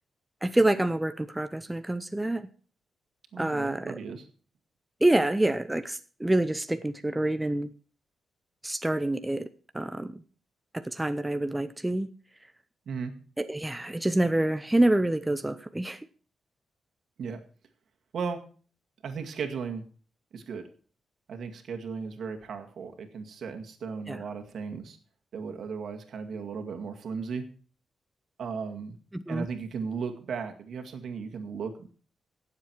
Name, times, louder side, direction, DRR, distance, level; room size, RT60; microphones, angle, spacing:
voice 1, 0.4-2.5 3.4-4.0 5.0-7.7 8.6-9.5 9.7-10.2 10.7-12.1 13.4-16.0 24.1-24.2 29.1-29.5, right 1 dB, 10° right, 10 dB, 0.7 m, -27 dB
voice 2, 3.3-4.3 12.9-13.1 17.2-17.4 18.1-18.4 19.0-19.8 20.3-20.6 21.3-25.0 25.3-27.5 28.4-29.0 29.3-31.9, right 5 dB, 70° right, 4 dB, 2.0 m, -36 dB
17.0 x 7.5 x 4.6 m, 0.41 s
cardioid pair, 95°, 0 cm